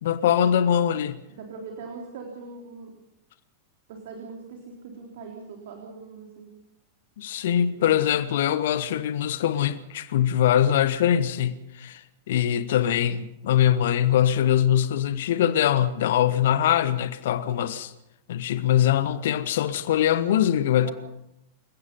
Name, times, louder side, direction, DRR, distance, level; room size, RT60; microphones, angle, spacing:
voice 1, 0.0-1.2 7.2-17.9 18.3-20.9, left 10 dB, 55° left, 1.2 m, -22 dB
voice 2, 1.3-2.9 3.9-6.5 7.8-8.0 16.2-16.3 20.8-20.9, right 4 dB, 55° right, 3.7 m, -41 dB
28.5 x 16.5 x 5.5 m
figure-of-eight pair, 90°, 0 cm